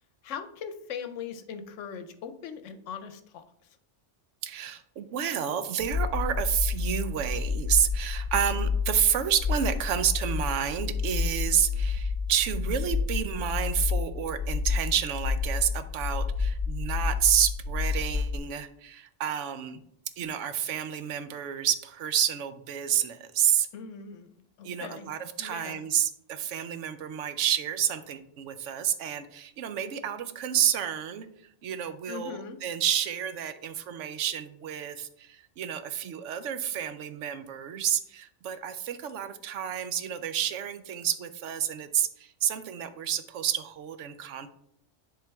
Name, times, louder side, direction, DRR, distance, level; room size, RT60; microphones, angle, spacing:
voice 1, 0.2-3.4 23.7-25.1 25.4-25.8 32.1-32.6, left 7 dB, 80° left, 10 dB, 1.0 m, -40 dB
voice 2, 4.4-19.8 20.2-23.7 24.6-31.3 31.6-44.5, right 9 dB, 80° right, 11 dB, 1.0 m, -29 dB
sound 1, 5.8-18.4, left 4 dB, 50° left, 0.9 m, -30 dB
10.0 x 3.7 x 3.4 m, 0.72 s
omnidirectional pair, 1.3 m